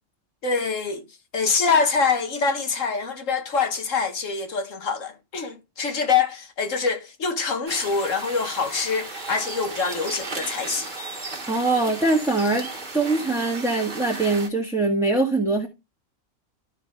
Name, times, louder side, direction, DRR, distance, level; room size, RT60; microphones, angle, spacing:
voice 1, 0.4-1.0 1.3-10.9, left 5 dB, 70° left, 1.8 m, -25 dB
sound 1, 7.7-14.5, right 3 dB, 35° right, 1.9 m, -35 dB
voice 2, 11.5-12.7 12.9-15.7, right 2 dB, ahead, 1.9 m, -22 dB
12.5 x 6.3 x 3.7 m
omnidirectional pair, 1.4 m